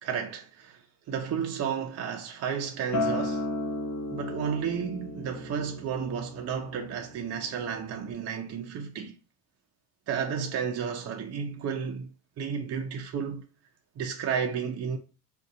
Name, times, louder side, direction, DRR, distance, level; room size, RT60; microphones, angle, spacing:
voice 1, 0.0-3.5 4.1-9.1 10.1-12.1 12.4-13.4 14.0-15.0, right 7 dB, 30° right, 0.6 m, -32 dB
Acoustic guitar, 2.9-8.1, left 2 dB, 35° left, 1.0 m, -35 dB
2.6 x 2.2 x 3.8 m
hypercardioid pair, 65°, 50 cm